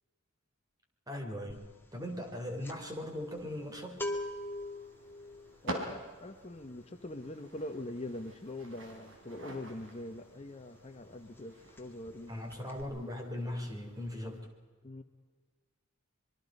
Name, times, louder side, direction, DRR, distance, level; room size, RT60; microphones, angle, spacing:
voice 1, 1.1-1.6 1.9-4.0 12.3-14.5, left 1 dB, 20° right, 4 dB, 3.3 m, -39 dB
sound 1, 1.5-10.6 10.9-11.1 11.4-12.2 12.5-12.8, left 1 dB, 10° left, 2.0 m, -43 dB
sound 2, 2.9-14.4, right 1 dB, 60° right, 4.2 m, -48 dB
voice 2, 5.6-12.3 12.9-13.2 14.8-15.0, left 1 dB, 30° left, 6 dB, 1.0 m, -43 dB
26.0 x 23.0 x 5.4 m, 1.4 s
head